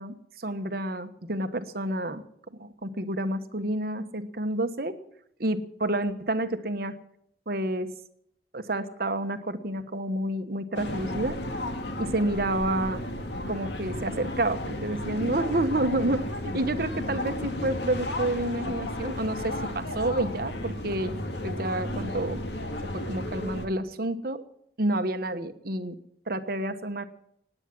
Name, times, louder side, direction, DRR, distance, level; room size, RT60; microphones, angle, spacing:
voice 1, 0.0-2.2 2.5-5.0 5.4-6.9 7.5-7.9 8.5-11.4 12.0-13.0 13.5-21.1 21.4-22.4 22.9-24.4 24.8-25.9 26.3-27.0, right 1 dB, 55° right, 9 dB, 1.2 m, -29 dB
sound 1, 10.7-23.7, left 1 dB, 80° left, 2.1 m, -33 dB
17.5 x 10.0 x 7.6 m, 0.71 s
head